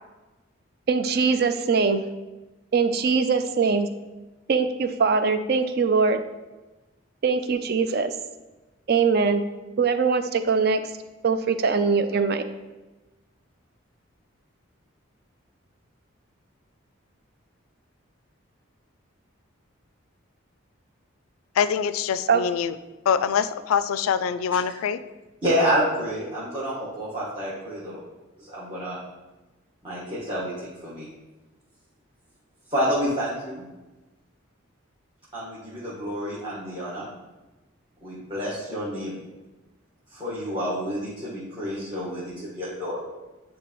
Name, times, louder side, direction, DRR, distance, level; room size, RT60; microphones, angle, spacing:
voice 1, 0.9-2.0 2.7-3.9 4.5-6.2 7.2-8.1 8.9-9.4 9.8-10.8 11.2-12.5 22.3-22.5, right 5 dB, 50° right, 9 dB, 0.4 m, -22 dB
voice 2, 21.6-22.7 23.1-25.0, left 7 dB, 80° left, 13 dB, 0.3 m, -24 dB
voice 3, 25.4-28.0 28.4-29.0 29.8-31.1 32.7-33.6 35.3-37.1 38.0-39.2 40.1-43.0, equal, 25° right, -10 dB, 1.4 m, -28 dB
9.8 x 3.3 x 3.1 m, 1.1 s
head